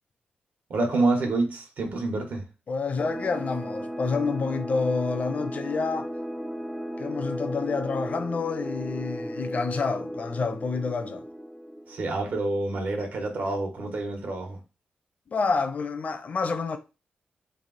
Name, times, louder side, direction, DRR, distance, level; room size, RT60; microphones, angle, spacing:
voice 1, 0.7-2.4 11.9-14.6, right 2 dB, 70° right, 1.3 m, -27 dB
voice 2, 2.7-6.1 7.0-11.2 15.3-16.8, left 4 dB, 50° left, 0.6 m, -28 dB
sound 1, 3.0-12.3, equal, 5° right, 0.4 m, -35 dB
3.4 x 2.8 x 4.0 m
wide cardioid pair, 130°, 3 cm